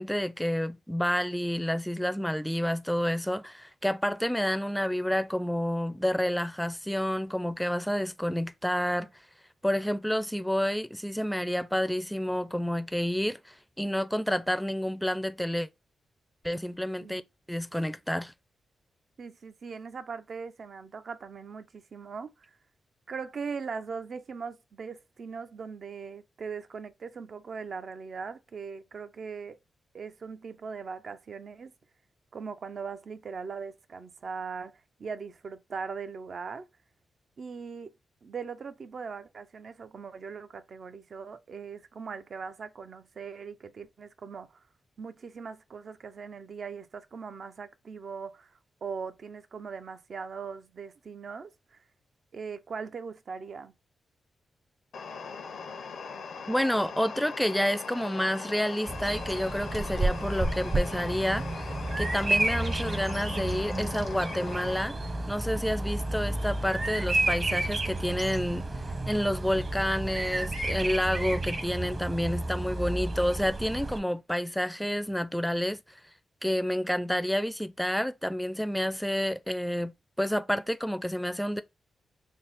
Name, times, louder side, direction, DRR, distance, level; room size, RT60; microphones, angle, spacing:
voice 1, 0.0-9.1 9.6-15.7 16.4-17.2 17.5-18.3 56.5-61.6 62.0-64.9 65.3-68.7 69.1-76.0 76.4-79.9 80.2-81.6, equal, 5° left, 0.4 m, -29 dB
voice 2, 19.2-22.6 23.1-29.6 29.9-31.7 32.3-36.7 37.4-37.9 38.2-44.6 45.0-51.8 52.3-53.7, right 5 dB, 60° right, 0.4 m, -40 dB
sound 1, 54.9-64.8, left 5 dB, 80° left, 0.6 m, -40 dB
Bird vocalization bird call bird song, 58.9-74.0, right 2 dB, 45° right, 0.9 m, -31 dB
3.5 x 2.0 x 3.9 m
supercardioid pair, 50°, 0 cm